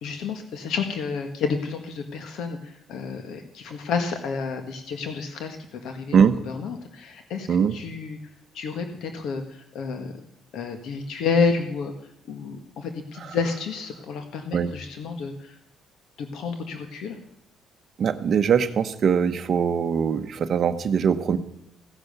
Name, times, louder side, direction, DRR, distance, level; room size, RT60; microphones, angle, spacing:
voice 1, 0.0-6.2 6.5-7.5 7.7-8.2 8.5-10.1 10.5-11.9 12.3-15.5 16.2-17.2, left 5 dB, 65° left, 6 dB, 1.6 m, -30 dB
voice 2, 7.5-7.8 13.2-13.4 14.5-14.7 18.0-21.4, right 7 dB, 40° right, 10 dB, 1.0 m, -22 dB
16.0 x 10.5 x 6.7 m, 0.81 s
cardioid pair, 175°, 0 cm